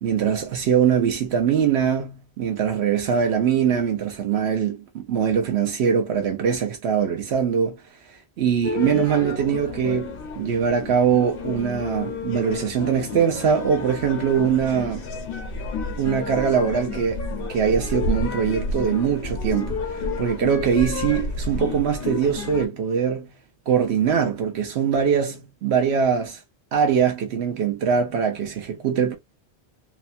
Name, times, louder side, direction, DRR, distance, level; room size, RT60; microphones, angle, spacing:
voice 1, 0.0-7.8 8.4-15.1 16.0-17.2 17.5-23.3 23.7-26.4 26.7-29.1, right 7 dB, 75° right, 0.9 m, -22 dB
sound 1, 8.6-22.7, left 3 dB, 60° left, 0.8 m, -31 dB
2.8 x 2.1 x 2.4 m
omnidirectional pair, 1.1 m